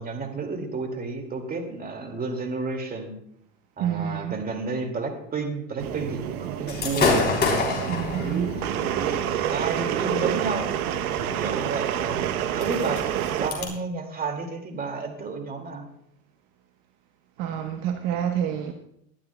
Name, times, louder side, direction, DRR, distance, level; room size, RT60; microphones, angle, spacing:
voice 1, 0.0-3.2 3.8-7.3 8.2-10.7 11.2-13.1 13.4-15.9, right 3 dB, 20° right, 2.2 m, -31 dB
voice 2, 3.8-4.3 7.9-8.5 17.4-18.7, right 9 dB, 50° right, 1.1 m, -28 dB
sound 1, 5.8-13.5, right 11 dB, 85° right, 1.0 m, -28 dB
Gunshot gunfire / Fireworks, 6.7-13.6, left 3 dB, 25° left, 3.5 m, -29 dB
20.0 x 11.5 x 2.2 m
supercardioid pair, 115°, 42 cm